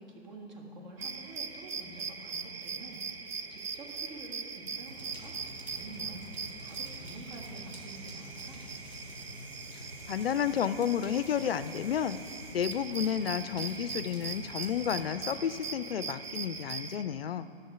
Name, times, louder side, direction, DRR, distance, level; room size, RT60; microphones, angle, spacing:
voice 1, 0.0-6.3 6.6-8.6, right 2 dB, 40° right, 1 dB, 1.8 m, -48 dB
sound 1, 1.0-17.0, right 5 dB, 65° right, 0.8 m, -41 dB
sound 2, 4.9-15.7, left 1 dB, 80° right, 3.0 m, -49 dB
sound 3, 6.5-12.6, left 2 dB, 5° left, 2.0 m, -57 dB
voice 2, 10.1-12.2 12.5-17.5, left 9 dB, 65° left, 14 dB, 0.5 m, -31 dB
12.5 x 6.4 x 5.8 m, 2.7 s
figure-of-eight pair, 120°, 33 cm